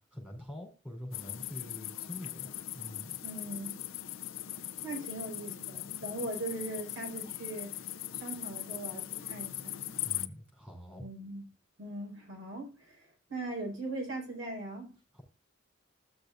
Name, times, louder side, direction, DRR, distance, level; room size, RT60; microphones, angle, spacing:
voice 1, 0.1-2.5 2.7-3.1 10.0-11.0 15.1-15.2, left 1 dB, 5° right, 4.3 m, -45 dB
sound 1, 1.1-10.3, left 13 dB, 85° left, 0.6 m, -40 dB
voice 2, 3.2-3.8 4.8-7.8 8.2-9.9 11.0-11.5 11.8-15.0, right 2 dB, 85° right, 5.2 m, -40 dB
14.5 x 6.7 x 2.6 m
head